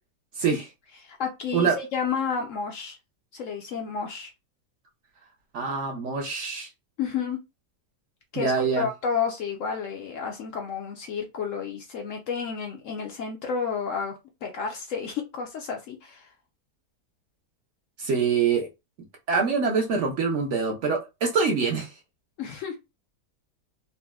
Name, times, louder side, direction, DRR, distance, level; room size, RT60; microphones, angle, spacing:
voice 1, 1.0-3.0 3.3-4.3 7.0-7.4 8.3-16.3 22.4-22.8, left 6 dB, 70° left, 3 dB, 0.8 m, -31 dB
voice 2, 5.5-6.7 8.4-8.9 18.0-18.7 19.3-22.0, right 5 dB, 60° right, 1 dB, 0.8 m, -25 dB
4.0 x 2.1 x 2.2 m, 0.24 s
omnidirectional pair, 1.7 m